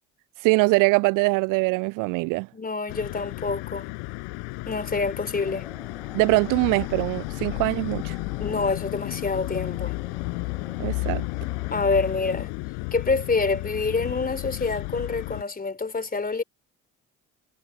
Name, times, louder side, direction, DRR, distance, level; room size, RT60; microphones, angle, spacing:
voice 1, 0.4-2.5 6.1-8.2 10.8-11.2, right 27 dB, 50° right, 0.5 m, -22 dB
voice 2, 2.5-3.9 4.7-5.7 8.4-9.9 11.7-12.5 12.9-16.4, left 4 dB, 20° left, 3.6 m, -27 dB
sound 1, 2.9-15.4, left 34 dB, 60° left, 5.2 m, -33 dB
sound 2, 5.4-12.0, equal, 5° left, 5.2 m, -49 dB
figure-of-eight pair, 55°, 42 cm